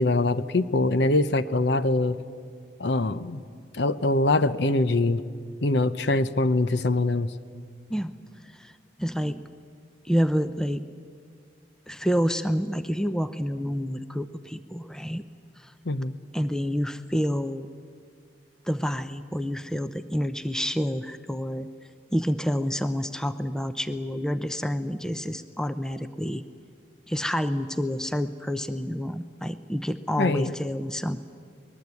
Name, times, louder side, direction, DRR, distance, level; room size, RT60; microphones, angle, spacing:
voice 1, 0.0-2.2 2.8-3.4 3.7-5.2 5.6-7.3 15.9-16.2 30.2-30.5, left 2 dB, 65° left, 13 dB, 0.8 m, -23 dB
voice 2, 8.4-9.4 10.0-10.8 11.9-15.2 15.6-15.7 16.3-17.7 18.6-21.7 22.1-26.4 27.1-31.2, equal, 5° left, 11 dB, 0.6 m, -28 dB
23.0 x 20.5 x 8.4 m, 2.2 s
head